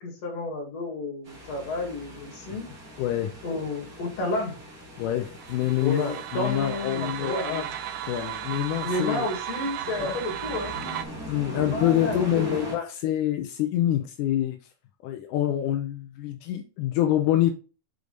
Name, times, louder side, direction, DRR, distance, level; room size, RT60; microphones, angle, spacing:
voice 1, 0.0-2.7 3.4-4.6 5.8-7.7 8.8-10.7 11.4-12.7, left 2 dB, 60° left, 0 dB, 3.2 m, -31 dB
sound 1, 1.3-12.8, left 2 dB, 35° right, 1.9 m, -39 dB
voice 2, 3.0-3.3 5.0-7.6 8.1-9.3 10.0-10.2 11.3-14.6 15.0-17.5, left 12 dB, 85° left, 5 dB, 2.2 m, -26 dB
sound 2, 5.4-11.1, right 13 dB, 75° right, 1.6 m, -35 dB
6.7 x 4.8 x 3.9 m, 0.36 s
omnidirectional pair, 3.6 m